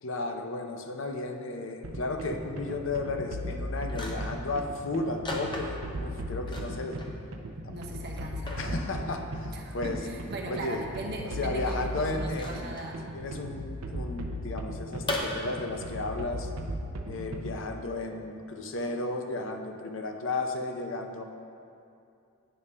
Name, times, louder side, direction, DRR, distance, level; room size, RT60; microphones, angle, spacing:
voice 1, 0.0-7.0 7.6-7.8 8.6-10.0 10.4-10.8 11.2-12.7 13.1-16.5 17.1-21.2, left 2 dB, 65° left, 4 dB, 0.6 m, -34 dB
sound 1, 1.8-17.8, equal, 85° right, 0.6 m, -37 dB
sound 2, 3.9-4.4 5.2-6.0 6.4-7.2 7.5-7.6 8.2-8.7 10.1-10.2 12.3-12.9 15.1-15.2, left 2 dB, 20° left, 0.6 m, -37 dB
voice 2, 7.7-8.8 9.5-13.0, right 2 dB, 50° right, 0 dB, 0.9 m, -39 dB
9.1 x 3.7 x 5.5 m, 2.5 s
head